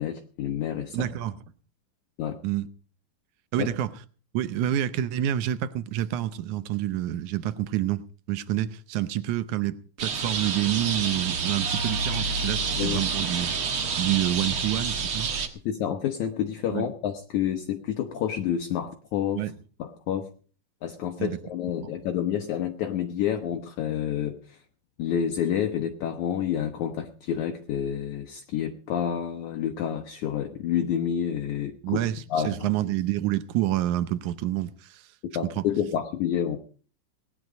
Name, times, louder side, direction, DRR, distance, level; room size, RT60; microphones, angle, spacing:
voice 1, 0.0-1.1 2.2-2.4 3.6-3.7 12.8-13.0 15.6-19.4 19.8-20.3 20.8-24.6 25.0-32.0 32.3-32.7 35.3-36.6, left 9 dB, 65° left, 2.2 m, -29 dB
voice 2, 0.9-1.3 2.4-2.7 3.5-3.9 4.3-15.3 16.7-16.9 19.3-19.5 21.2-21.4 31.8-35.1 35.6-35.7, right 13 dB, 75° right, 2.0 m, -28 dB
sound 1, 10.0-15.5, right 5 dB, 50° right, 2.0 m, -28 dB
18.5 x 11.0 x 5.2 m
omnidirectional pair, 4.0 m